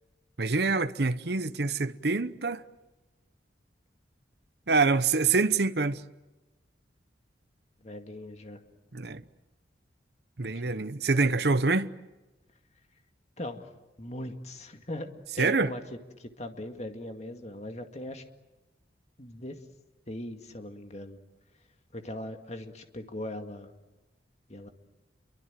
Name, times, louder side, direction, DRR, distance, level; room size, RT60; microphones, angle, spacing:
voice 1, 0.4-2.6 4.7-6.0 8.9-9.2 10.4-11.9 15.4-15.7, right 3 dB, 60° right, 0.9 m, -26 dB
voice 2, 7.8-8.6 10.4-10.8 13.4-13.7 14.0-18.2 19.2-19.7 20.1-21.2 21.9-23.7 24.5-24.7, left 1 dB, 35° left, 2.1 m, -40 dB
28.5 x 24.0 x 7.6 m
head